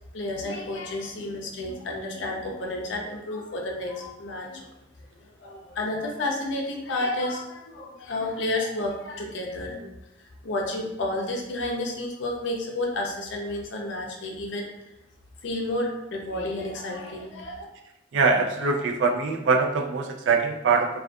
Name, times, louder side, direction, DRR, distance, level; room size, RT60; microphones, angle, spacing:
voice 1, 0.1-4.7 5.2-9.9 10.2-14.7 15.4-17.7, left 2 dB, 75° left, 1 dB, 0.5 m, -31 dB
voice 2, 18.1-21.0, right 4 dB, 75° right, 3 dB, 0.3 m, -23 dB
2.5 x 2.3 x 2.2 m, 0.90 s
head